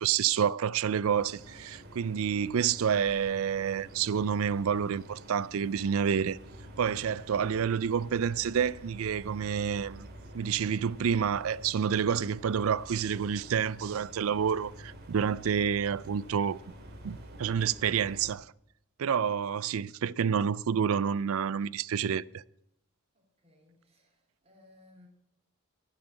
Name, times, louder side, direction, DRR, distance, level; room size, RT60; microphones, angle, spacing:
voice 1, 0.0-6.4 6.8-10.1 10.3-16.6 17.0-18.5 19.0-22.4, right 7 dB, 70° right, 0.4 m, -29 dB
sound 1, 1.0-18.3, equal, 50° right, 2.3 m, -48 dB
voice 2, 23.1-25.1, left 2 dB, 30° right, 3.3 m, -60 dB
11.5 x 7.4 x 8.5 m
head